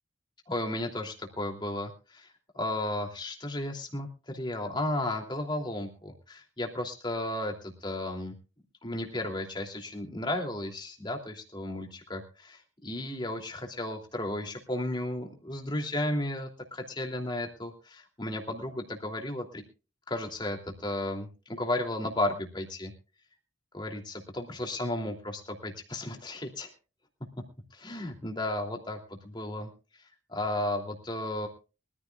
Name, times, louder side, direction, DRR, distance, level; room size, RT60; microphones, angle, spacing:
voice 1, 0.5-8.4 8.8-19.6 20.1-22.9 23.7-26.7 27.7-29.7 30.3-31.5, left 1 dB, 20° left, 2 dB, 2.9 m, -34 dB
23.5 x 14.5 x 2.4 m, 0.34 s
head